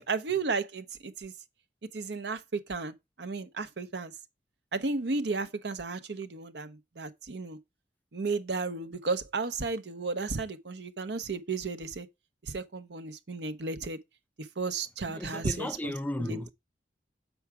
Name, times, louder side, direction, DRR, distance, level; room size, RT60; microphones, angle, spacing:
voice 1, 0.0-1.3 1.9-4.1 4.7-7.6 8.1-12.1 12.4-14.0 14.4-15.9 16.2-16.4, right 4 dB, 75° right, 0.8 m, -33 dB
voice 2, 15.1-16.5, left 1 dB, 10° left, 0.4 m, -35 dB
7.1 x 4.6 x 4.7 m
head